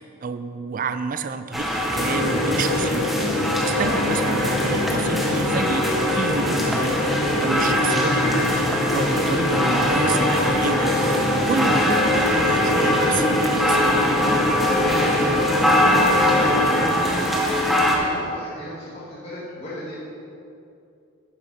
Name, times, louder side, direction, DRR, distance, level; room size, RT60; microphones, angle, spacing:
voice 1, 0.2-13.9, right 4 dB, 40° right, 10 dB, 0.3 m, -30 dB
sound 1, 1.5-18.0, equal, ahead, 0.9 m, -22 dB
sound 2, 1.9-16.8, left 2 dB, 60° left, 1.2 m, -25 dB
voice 2, 3.8-4.1 15.0-17.4 17.8-20.0, left 1 dB, 30° left, -9 dB, 2.0 m, -36 dB
9.5 x 7.1 x 5.5 m, 2.6 s
head